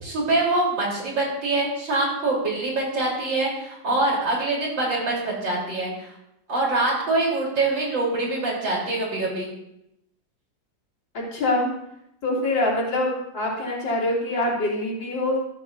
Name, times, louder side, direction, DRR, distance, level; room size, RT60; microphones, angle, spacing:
voice 1, 0.0-6.1 6.5-9.5, right 2 dB, 75° right, -3 dB, 4.4 m, -24 dB
voice 2, 11.1-11.7 12.2-15.4, left 2 dB, 75° left, -4 dB, 3.7 m, -24 dB
13.5 x 13.0 x 2.6 m, 0.81 s
omnidirectional pair, 2.0 m